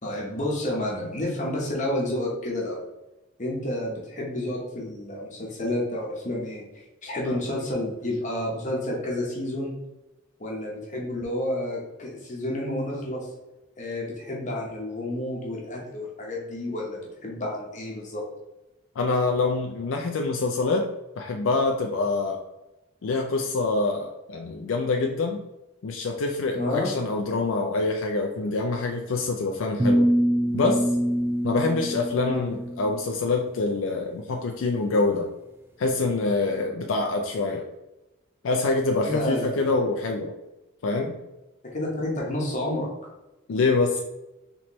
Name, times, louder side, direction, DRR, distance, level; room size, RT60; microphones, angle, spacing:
voice 1, 0.0-2.8 3.4-6.7 7.0-9.7 10.4-13.3 13.8-18.2 26.5-26.9 32.3-32.4 39.0-39.8 41.7-42.9, left 1 dB, 35° left, -2 dB, 0.9 m, -30 dB
voice 2, 19.0-20.9 21.2-22.4 23.0-25.4 25.8-30.1 30.5-30.9 31.4-35.3 35.8-37.7 38.4-40.3 40.8-41.2 43.5-44.0, left 3 dB, 75° left, 2 dB, 0.4 m, -25 dB
sound 1, 29.8-32.9, equal, 10° right, 0.3 m, -24 dB
4.2 x 3.2 x 3.0 m, 0.99 s
head